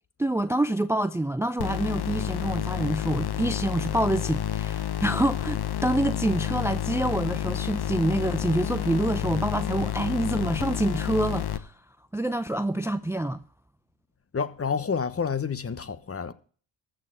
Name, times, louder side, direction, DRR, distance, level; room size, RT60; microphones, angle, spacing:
voice 1, 0.2-11.7 12.1-13.4, right 1 dB, 5° right, 0.6 m, -27 dB
sound 1, 1.6-11.6, left 11 dB, 50° left, 1.1 m, -30 dB
voice 2, 14.3-16.3, left 6 dB, 30° left, 1.1 m, -29 dB
14.0 x 6.7 x 7.4 m
hypercardioid pair, 50°, 49 cm